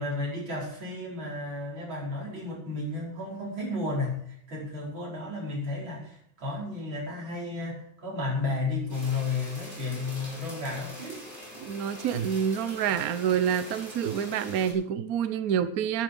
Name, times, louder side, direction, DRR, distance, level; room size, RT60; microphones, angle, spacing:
voice 1, 0.0-11.2, left 3 dB, 75° right, -4 dB, 6.0 m, -33 dB
sound 1, 8.9-14.7, equal, 10° right, 5.6 m, -44 dB
voice 2, 11.6-16.0, right 8 dB, 60° right, 12 dB, 1.0 m, -27 dB
11.0 x 10.0 x 6.9 m, 0.67 s
omnidirectional pair, 2.2 m